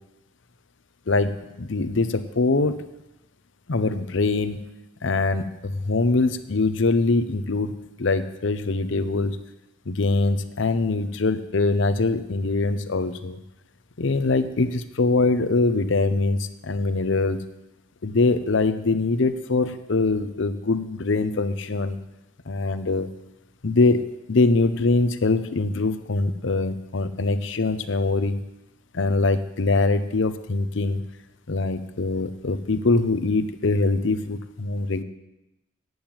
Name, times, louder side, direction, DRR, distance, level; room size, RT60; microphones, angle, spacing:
voice 1, 1.1-2.8 3.7-4.6 5.0-9.4 9.9-13.4 14.0-17.4 18.0-22.0 22.5-23.1 23.6-28.4 28.9-31.0 31.5-35.0, left 3 dB, 70° left, 11 dB, 0.7 m, -23 dB
8.8 x 7.9 x 8.8 m, 0.95 s
head